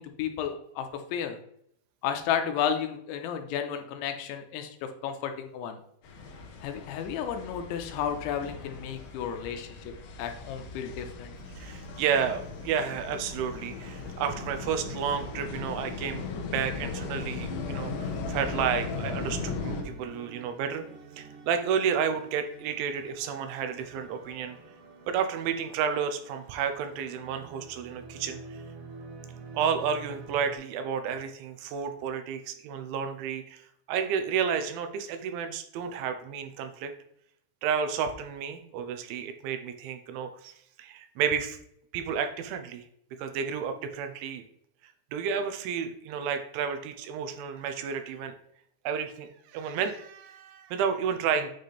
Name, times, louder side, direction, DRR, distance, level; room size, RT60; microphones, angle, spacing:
voice 1, 0.0-1.4 2.0-5.8 6.6-9.9 10.2-11.3, left 8 dB, 90° left, 6 dB, 3.1 m, -32 dB
sound 1, 6.0-19.8, left 4 dB, 70° left, 2.2 m, -37 dB
voice 2, 11.6-20.8 21.2-24.6 25.1-28.6 29.5-33.6 33.9-36.9 37.6-40.5 40.8-41.6 41.9-42.8 43.2-44.4 45.1-48.3 48.9-51.5, right 7 dB, 90° right, 7 dB, 3.2 m, -31 dB
sound 2, 19.2-30.6, right 4 dB, 65° right, 2.1 m, -48 dB
9.0 x 4.2 x 3.2 m, 0.69 s
omnidirectional pair, 5.2 m